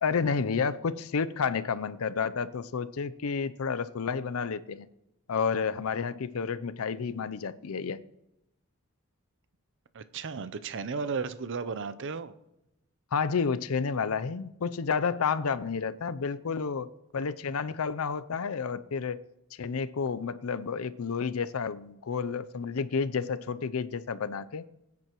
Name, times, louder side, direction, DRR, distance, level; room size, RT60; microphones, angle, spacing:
voice 1, 0.0-4.9 5.3-8.0 13.1-19.2 19.6-24.6, left 5 dB, 70° left, 14 dB, 0.5 m, -30 dB
voice 2, 9.9-12.3 17.2-17.3, right 5 dB, 60° right, 13 dB, 0.6 m, -34 dB
19.5 x 9.5 x 3.0 m, 0.87 s
head